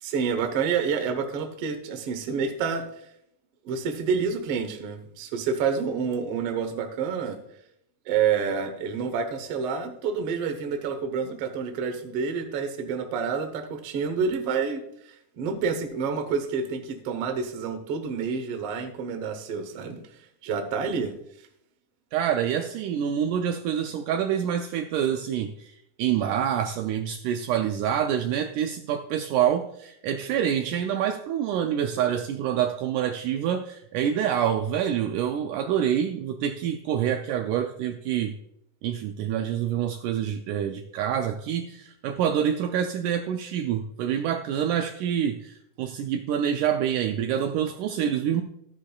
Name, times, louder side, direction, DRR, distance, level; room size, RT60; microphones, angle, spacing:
voice 1, 0.0-2.9 3.6-7.4 8.1-20.0 20.4-21.1, right 6 dB, 65° right, 6 dB, 1.5 m, -28 dB
voice 2, 22.1-38.4 38.8-48.4, right 9 dB, 80° right, 5 dB, 1.9 m, -26 dB
13.0 x 10.0 x 2.3 m, 0.77 s
omnidirectional pair, 3.9 m